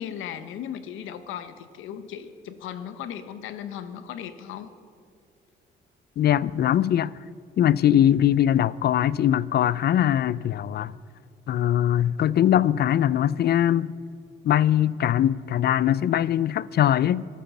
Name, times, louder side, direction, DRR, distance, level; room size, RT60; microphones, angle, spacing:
voice 1, 0.0-4.7, left 9 dB, 90° left, 0.9 m, -37 dB
voice 2, 6.2-7.1 7.6-10.9 11.5-13.9 14.4-17.2, left 11 dB, 55° left, 0.4 m, -21 dB
14.5 x 13.0 x 6.0 m
cardioid pair, 90°, 20 cm